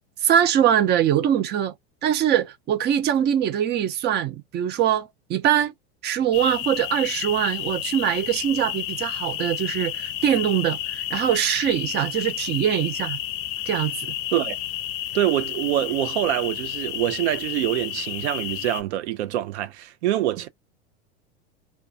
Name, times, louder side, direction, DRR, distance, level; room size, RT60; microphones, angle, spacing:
voice 1, 0.2-1.7 2.0-5.7 6.0-13.2 13.7-14.1, right 10 dB, 30° right, 0.5 m, -23 dB
sound 1, 6.3-18.8, left 13 dB, 60° left, 0.5 m, -31 dB
voice 2, 15.1-20.5, right 13 dB, 80° right, 0.5 m, -25 dB
2.3 x 2.2 x 2.6 m
supercardioid pair, 110°, 33 cm